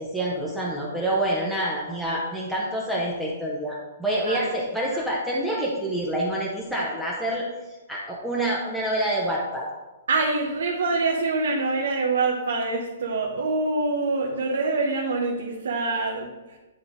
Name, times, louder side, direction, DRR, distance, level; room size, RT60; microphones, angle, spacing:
voice 1, 0.0-9.7, right 1 dB, ahead, -5 dB, 0.7 m, -27 dB
voice 2, 10.1-16.6, right 3 dB, 85° right, -1 dB, 1.0 m, -25 dB
10.5 x 3.7 x 4.0 m, 1.1 s
hypercardioid pair, 175°, 0 cm